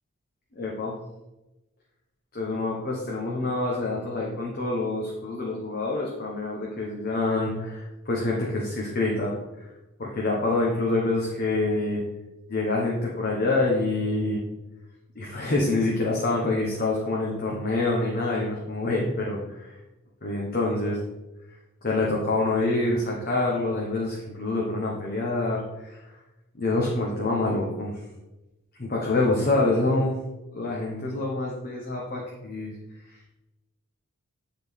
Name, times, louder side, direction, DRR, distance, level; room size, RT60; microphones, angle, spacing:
voice 1, 0.6-1.0 2.3-9.7 10.0-12.0 12.5-14.4 15.1-19.7 20.2-21.0 21.8-26.0 26.6-27.9 28.8-30.1 30.5-32.7, left 2 dB, 40° left, -3 dB, 0.9 m, -26 dB
7.9 x 4.0 x 3.5 m, 1.0 s
head